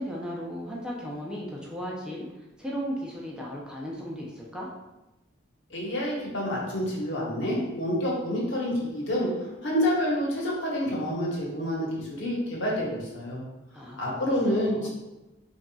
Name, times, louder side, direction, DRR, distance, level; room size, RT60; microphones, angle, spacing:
voice 1, 0.0-2.3 2.6-4.7 13.7-14.9, equal, 5° right, -4 dB, 0.5 m, -36 dB
voice 2, 5.7-13.4 14.0-14.9, equal, 65° left, -4 dB, 1.2 m, -28 dB
5.7 x 2.6 x 2.3 m, 1.0 s
head